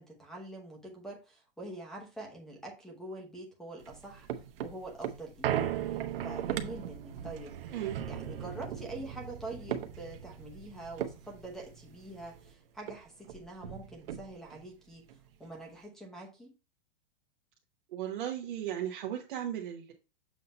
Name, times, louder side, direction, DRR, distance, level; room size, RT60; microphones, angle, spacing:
voice 1, 0.0-4.3 4.6-5.7 6.2-7.6 8.1-15.1 15.4-16.5, right 2 dB, ahead, 0.9 m, -45 dB
sound 1, 3.8-12.5 12.9-13.0 13.2-14.6 15.1-15.2, right 10 dB, 70° right, 0.9 m, -38 dB
voice 2, 17.9-19.9, right 10 dB, 55° right, 1.2 m, -36 dB
7.5 x 2.8 x 5.3 m
supercardioid pair, 175°, 29 cm